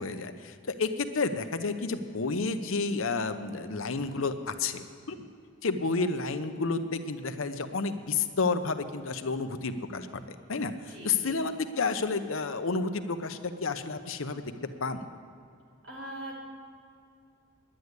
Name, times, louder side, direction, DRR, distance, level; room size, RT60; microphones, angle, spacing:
voice 1, 0.0-5.2 5.6-14.5 14.8-15.1, left 4 dB, 75° left, 9 dB, 0.8 m, -31 dB
voice 2, 10.9-11.4 15.8-16.4, right 1 dB, 60° right, -4 dB, 3.9 m, -41 dB
10.5 x 10.0 x 8.0 m, 2.5 s
head